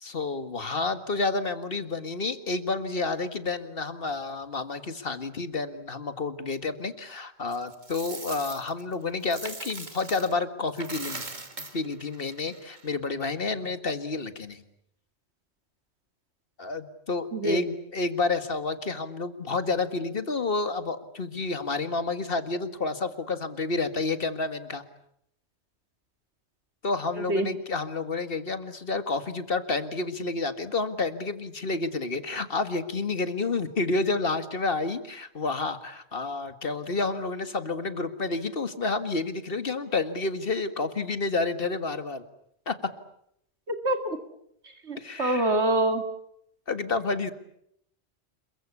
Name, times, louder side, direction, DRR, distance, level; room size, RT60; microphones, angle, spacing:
voice 1, 0.0-11.3 11.7-14.6 16.6-24.8 26.8-42.2 42.7-42.8 45.0-45.6 46.7-47.3, left 3 dB, 55° left, 11 dB, 2.0 m, -30 dB
Coin (dropping), 7.5-10.4 10.7-13.0, right 2 dB, 45° right, 2.4 m, -40 dB
voice 2, 17.3-17.6 27.3-27.5 43.7-44.2 44.9-46.0, right 1 dB, 85° right, 8 dB, 2.7 m, -25 dB
27.5 x 23.0 x 8.4 m, 0.74 s
omnidirectional pair, 1.1 m